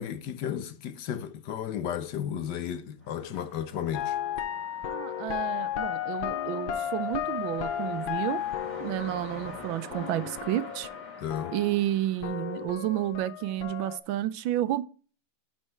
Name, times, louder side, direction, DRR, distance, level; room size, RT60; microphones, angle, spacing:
voice 1, 0.0-4.1 11.2-11.5, left 9 dB, 70° left, 1.3 m, -33 dB
sound 1, 3.0-13.2, left 1 dB, 5° left, 3.1 m, -47 dB
sound 2, 3.9-12.0 12.2-14.0, left 10 dB, 90° left, 1.7 m, -34 dB
voice 2, 4.8-8.4 8.8-10.9 11.5-14.8, right 13 dB, 85° right, 1.4 m, -31 dB
11.0 x 4.4 x 4.4 m
omnidirectional pair, 2.1 m